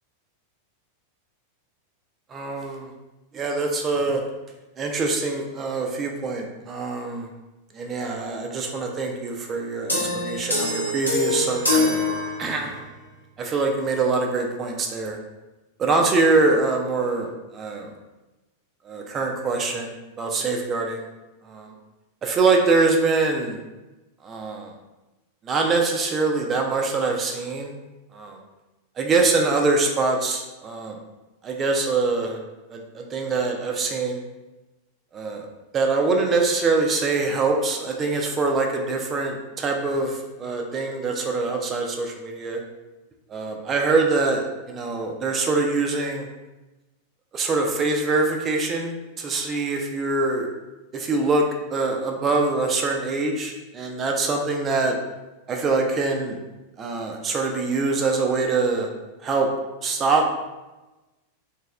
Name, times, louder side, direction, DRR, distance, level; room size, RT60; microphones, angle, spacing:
voice 1, 2.3-2.9 3.3-4.2 4.8-7.3 7.7-11.9 12.4-12.9 13.4-15.2 15.8-17.9 18.8-21.1 21.4-21.7 22.2-23.6 24.2-24.7 25.4-27.7 28.1-28.4 29.0-31.0 31.4-32.4 32.7-34.2 35.1-35.5 35.7-42.6 43.3-46.3 47.3-50.5 50.9-51.4 51.7-55.0 55.5-56.4 56.8-58.9 59.2-59.5 59.8-60.3, right 3 dB, 25° right, 2 dB, 0.4 m, -24 dB
sound 1, 9.9-12.9, left 2 dB, 85° left, 0.8 m, -24 dB
3.0 x 2.9 x 2.3 m, 1.1 s
figure-of-eight pair, 90°, 0 cm